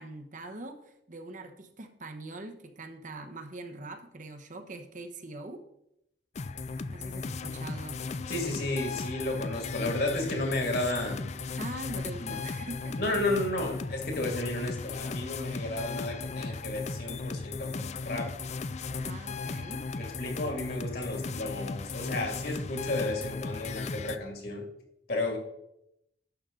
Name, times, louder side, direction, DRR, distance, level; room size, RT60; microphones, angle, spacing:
voice 1, 0.0-5.6 6.9-8.0 11.5-13.0 19.0-19.8, right 2 dB, 45° right, 7 dB, 1.0 m, -42 dB
sound 1, 6.3-24.2, left 4 dB, 40° left, 0.4 m, -36 dB
voice 2, 8.3-11.3 12.2-12.4 13.0-18.3 20.0-24.7 25.1-25.4, left 2 dB, 55° left, 2 dB, 2.2 m, -32 dB
11.5 x 7.1 x 3.8 m, 0.80 s
head